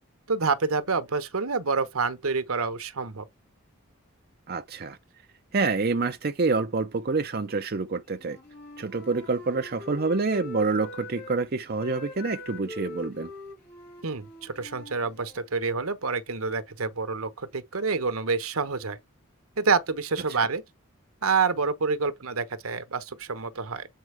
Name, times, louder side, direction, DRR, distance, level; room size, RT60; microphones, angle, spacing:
voice 1, 0.3-3.2 14.0-19.0 19.6-20.6 21.2-23.9, right 4 dB, 75° right, 1.1 m, -27 dB
voice 2, 4.5-5.0 5.5-8.4 8.8-13.3 20.3-20.5, right 3 dB, 45° right, 0.6 m, -27 dB
Wind instrument woodwind instrument, 8.1-11.4 11.7-15.5, left 2 dB, 45° left, 3.7 m, -43 dB
7.7 x 4.4 x 3.4 m
head